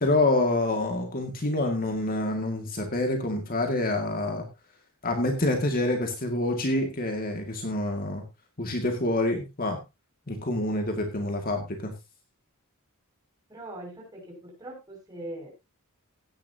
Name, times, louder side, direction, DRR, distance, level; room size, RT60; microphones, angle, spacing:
voice 1, 0.0-4.4 5.0-8.2 8.6-9.8 10.3-11.9, left 2 dB, 40° left, 4 dB, 2.1 m, -27 dB
voice 2, 13.5-15.5, right 1 dB, 20° right, -1 dB, 6.1 m, -41 dB
16.0 x 10.5 x 2.8 m, 0.24 s
head